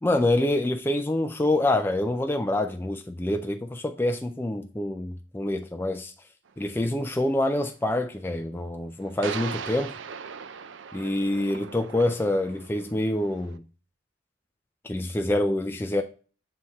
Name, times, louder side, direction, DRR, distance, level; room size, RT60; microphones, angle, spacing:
voice 1, 0.0-6.1 6.6-9.9 10.9-13.6 14.8-16.0, left 1 dB, 10° left, 0.3 m, -26 dB
sound 1, 6.5-6.6 9.2-13.6, right 6 dB, 70° right, 0.4 m, -39 dB
7.5 x 3.2 x 4.1 m
head